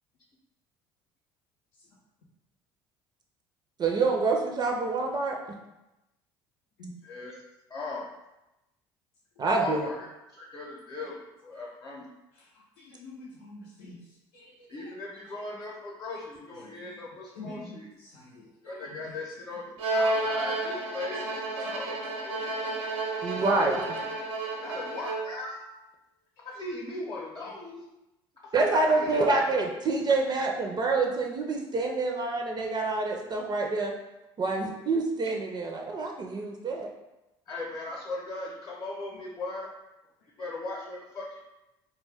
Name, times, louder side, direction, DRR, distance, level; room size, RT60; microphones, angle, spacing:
voice 1, 3.8-5.4 9.4-9.8 23.2-23.8 28.5-33.9 34.4-36.9, right 3 dB, 35° right, 1 dB, 0.4 m, -27 dB
voice 2, 7.0-7.3 7.7-8.1 9.5-12.1 14.7-17.9 18.6-21.3 21.5-22.4 24.6-25.6 26.4-27.8 28.4-29.3 30.2-30.4 37.5-39.7 40.4-41.4, left 2 dB, 30° left, -4 dB, 0.7 m, -38 dB
voice 3, 12.8-14.0 14.3-14.4 17.4-18.8 22.4-22.5 23.0-23.4, left 2 dB, 80° left, -5 dB, 0.5 m, -46 dB
Bowed string instrument, 19.8-25.5, right 2 dB, 80° right, 0.6 m, -31 dB
2.2 x 2.2 x 3.4 m, 0.96 s
hypercardioid pair, 70°, 12 cm